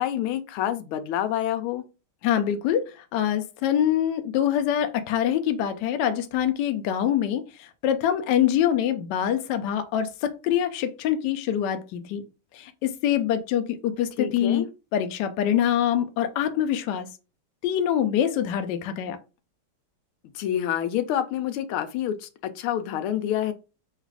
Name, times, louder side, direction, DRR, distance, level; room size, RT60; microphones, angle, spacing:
voice 1, 0.0-1.8 14.2-14.7 20.3-23.5, left 11 dB, 90° left, 1.5 m, -27 dB
voice 2, 2.2-12.2 12.5-14.7 14.9-17.1 17.6-19.2, left 10 dB, 70° left, 1.1 m, -25 dB
4.0 x 2.4 x 4.7 m
omnidirectional pair, 2.3 m